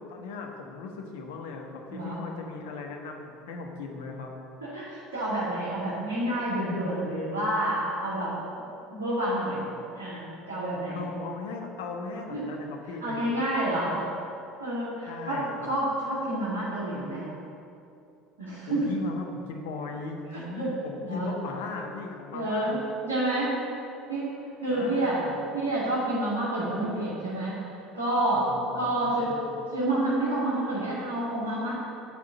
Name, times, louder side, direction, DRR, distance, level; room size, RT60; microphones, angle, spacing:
voice 1, 0.1-4.3 10.9-13.3 13.7-14.0 15.1-15.7 18.7-22.9 24.7-25.4 28.3-29.5, left 4 dB, 70° left, 2 dB, 1.2 m, -38 dB
voice 2, 4.6-8.3 8.9-9.6 9.9-11.0 12.3-12.4 13.0-13.9 14.6-15.4 15.7-17.3 18.4-18.8 20.3-21.3 22.3-23.5 24.1-24.3 24.6-25.2 25.5-28.4 28.7-29.3 29.7-31.7, right 1 dB, 80° right, -11 dB, 2.2 m, -29 dB
10.0 x 5.0 x 7.0 m, 2.7 s
figure-of-eight pair, 65°, 0 cm